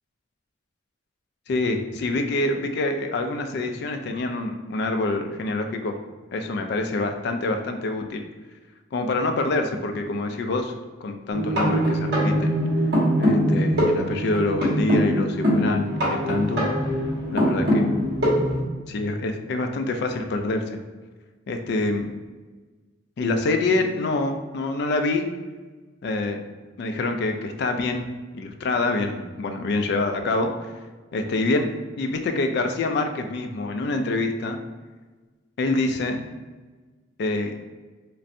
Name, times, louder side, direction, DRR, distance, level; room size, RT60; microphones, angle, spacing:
voice 1, 1.5-5.9 6.3-8.2 8.9-10.7 11.0-12.6 13.2-16.7 17.3-17.9 18.9-20.8 21.5-22.1 23.2-25.3 26.0-26.4 26.8-28.0 28.3-30.5 31.1-34.6 35.6-36.2 37.2-37.7, left 2 dB, 55° left, 5 dB, 0.3 m, -26 dB
sound 1, 11.3-18.6, equal, 55° right, 1.1 m, -22 dB
3.2 x 2.5 x 2.6 m, 1.3 s
head